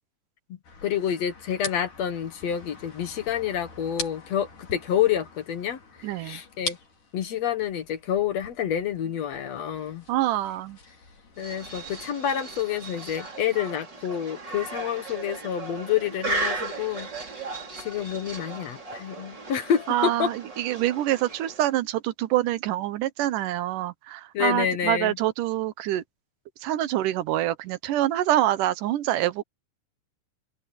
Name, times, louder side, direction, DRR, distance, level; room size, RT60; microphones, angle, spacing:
voice 1, 0.5-6.8 7.1-10.0 11.4-17.1 17.8-20.3 24.3-25.2, left 9 dB, 60° left, 2.4 m, -28 dB
sound 1, 0.6-12.0, left 4 dB, 90° left, 6.9 m, -43 dB
voice 2, 6.0-6.4 10.1-10.8 19.9-26.0 26.6-29.4, right 13 dB, 85° right, 2.5 m, -26 dB
sound 2, 11.4-21.8, right 2 dB, 35° right, 5.3 m, -36 dB
open air
omnidirectional pair, 3.6 m